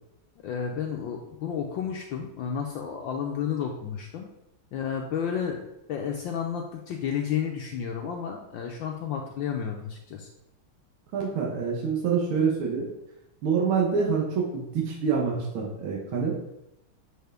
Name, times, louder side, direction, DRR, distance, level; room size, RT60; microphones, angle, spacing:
voice 1, 0.4-4.3 4.7-5.6 5.9-10.3, left 7 dB, 70° left, 2 dB, 1.2 m, -31 dB
voice 2, 11.1-12.9 13.4-16.4, right 6 dB, 70° right, -2 dB, 1.9 m, -26 dB
7.9 x 4.8 x 3.4 m, 0.86 s
omnidirectional pair, 2.4 m